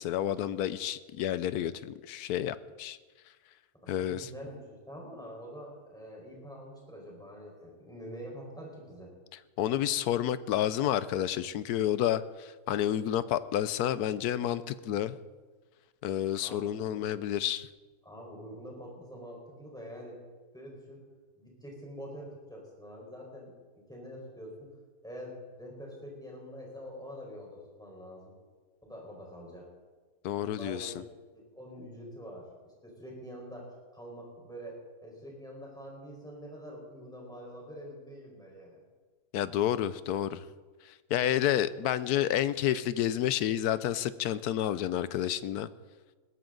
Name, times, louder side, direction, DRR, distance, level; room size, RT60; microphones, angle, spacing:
voice 1, 0.0-3.0 3.9-4.3 9.6-15.2 16.0-17.7 30.2-30.9 39.3-40.4 41.1-45.7, left 11 dB, 80° left, 15 dB, 1.2 m, -30 dB
voice 2, 3.8-9.1 16.4-16.9 18.0-20.2 20.5-21.0 21.4-24.7 25.0-28.3 28.8-29.7 30.4-31.1 31.3-38.8, equal, ahead, -2 dB, 4.7 m, -45 dB
21.0 x 15.5 x 3.9 m, 1.4 s
omnidirectional pair, 1.6 m